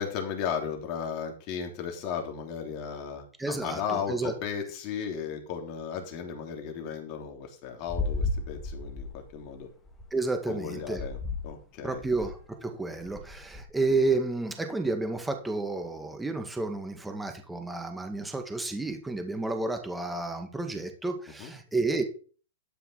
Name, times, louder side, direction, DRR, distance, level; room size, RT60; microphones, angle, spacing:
voice 1, 0.0-9.7 10.5-11.2 11.4-12.0 21.4-21.5, left 7 dB, 40° left, 3 dB, 3.3 m, -35 dB
voice 2, 3.4-4.3 10.1-11.0 11.8-22.0, right 3 dB, 5° right, 5 dB, 1.9 m, -31 dB
sound 1, 7.9-10.0 10.9-11.6 11.9-12.4 13.0-13.6, left 3 dB, 10° left, 2.7 m, -34 dB
12.0 x 5.8 x 5.6 m, 0.39 s
hypercardioid pair, 135°, 0 cm